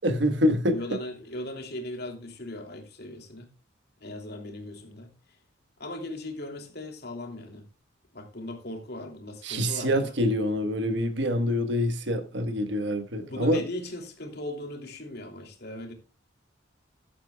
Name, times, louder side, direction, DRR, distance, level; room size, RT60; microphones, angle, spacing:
voice 1, 0.0-0.8 9.4-13.6, equal, 60° right, 1.5 m, -26 dB
voice 2, 0.7-3.5 4.0-5.1 5.8-7.6 8.1-10.1 13.2-15.9, left 1 dB, 50° left, 2.9 m, -38 dB
15.0 x 12.0 x 2.3 m
head